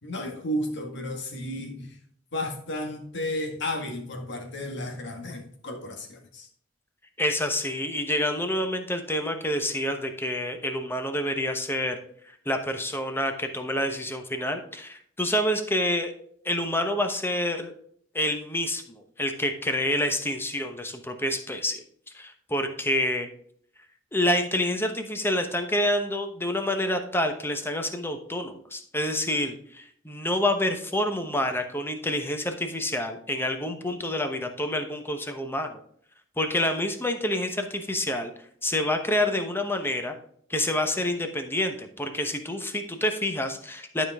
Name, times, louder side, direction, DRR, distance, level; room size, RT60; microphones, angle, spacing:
voice 1, 0.0-2.0 2.3-6.5, left 1 dB, 60° left, 3 dB, 1.8 m, -33 dB
voice 2, 7.2-12.0 12.2-16.1 16.4-17.7 18.1-21.8 22.1-23.3 24.1-35.8 36.4-38.3 38.6-40.1 40.5-44.1, left 1 dB, 10° left, 6 dB, 1.0 m, -28 dB
11.5 x 5.1 x 3.5 m, 0.63 s
head